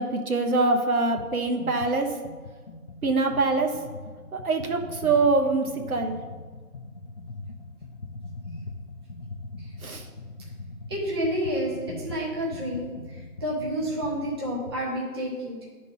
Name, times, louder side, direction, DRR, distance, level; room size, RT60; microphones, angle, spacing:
voice 1, 0.0-2.2 3.0-3.8 4.3-6.2 9.8-10.1, right 3 dB, 65° right, 4 dB, 1.2 m, -24 dB
Jazz Voktebof Dirty, 1.2-1.3 1.6-14.9, left 2 dB, 45° left, 0.6 m, -41 dB
voice 2, 10.9-15.7, equal, 15° right, -5 dB, 1.0 m, -30 dB
9.6 x 4.2 x 5.2 m, 1.4 s
figure-of-eight pair, 160°, 46 cm